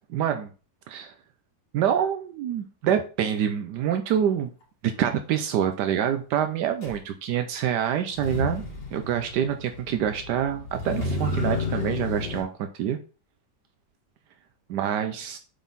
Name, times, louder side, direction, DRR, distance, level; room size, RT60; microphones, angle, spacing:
voice 1, 0.1-0.5 0.9-1.1 1.7-4.5 4.8-8.6 8.9-13.0 14.7-15.4, right 9 dB, 80° right, 7 dB, 1.2 m, -26 dB
Motor vehicle (road), 6.8-6.9 8.1-12.4, left 3 dB, 85° left, 3.2 m, -31 dB
8.2 x 3.9 x 4.0 m, 0.36 s
omnidirectional pair, 1.8 m